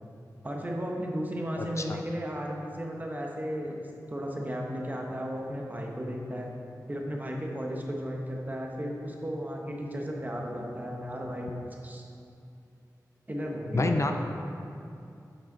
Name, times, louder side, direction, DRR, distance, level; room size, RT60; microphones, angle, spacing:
voice 1, 0.4-6.5 6.9-11.6 11.8-12.0 13.3-14.1, equal, 25° right, 0 dB, 1.0 m, -34 dB
voice 2, 1.6-2.0 13.7-14.1, left 3 dB, 45° left, 5 dB, 0.4 m, -28 dB
7.5 x 5.7 x 3.9 m, 2.6 s
wide cardioid pair, 70°, 7 cm